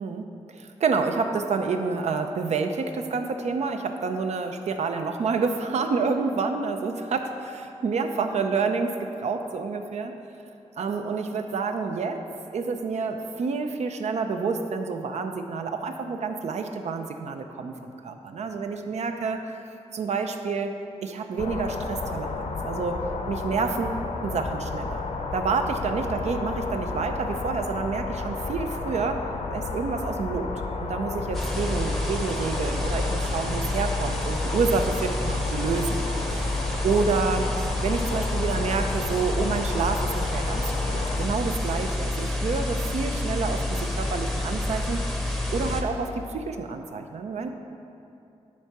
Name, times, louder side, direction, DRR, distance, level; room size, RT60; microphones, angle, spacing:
voice 1, 0.0-10.1 10.8-12.2 12.5-19.4 19.9-20.7 21.0-23.0 23.3-29.2 29.5-30.5 30.8-45.0 45.5-47.5, right 4 dB, 70° right, 6 dB, 0.6 m, -28 dB
sound 1, 21.4-41.3, left 3 dB, 75° left, 0.7 m, -33 dB
sound 2, 31.3-45.8, left 1 dB, ahead, 0.7 m, -28 dB
11.0 x 4.6 x 6.0 m, 2.7 s
wide cardioid pair, 170°, 12 cm